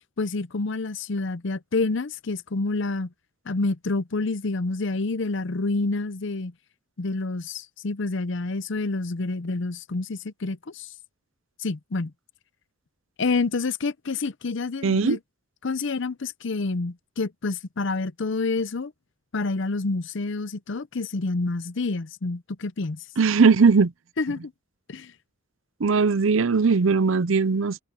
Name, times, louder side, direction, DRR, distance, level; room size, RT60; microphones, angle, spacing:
voice 1, 0.2-3.1 3.5-6.5 7.0-10.9 11.6-12.1 13.2-15.2 15.6-18.9 19.3-23.0 24.2-24.5 24.9-25.1, left 3 dB, 60° left, 0.7 m, -28 dB
voice 2, 14.8-15.2 23.2-23.9 25.8-27.8, right 4 dB, 65° right, 0.6 m, -19 dB
head